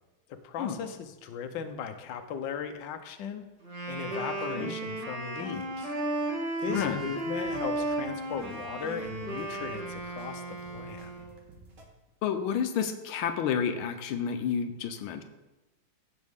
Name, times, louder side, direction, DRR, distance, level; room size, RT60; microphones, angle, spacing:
voice 1, 0.3-3.5 3.9-5.9 6.6-10.4 10.7-11.1, left 7 dB, 70° left, 7 dB, 1.4 m, -37 dB
Wind instrument woodwind instrument, 3.6-11.3, right 2 dB, 50° right, 3.8 m, -34 dB
voice 2, 6.7-7.0 12.2-15.2, left 7 dB, 85° left, 8 dB, 1.6 m, -30 dB
sound 1, 6.7-11.8, right 2 dB, 80° right, 2.4 m, -53 dB
16.0 x 6.2 x 3.6 m, 1.0 s
omnidirectional pair, 2.2 m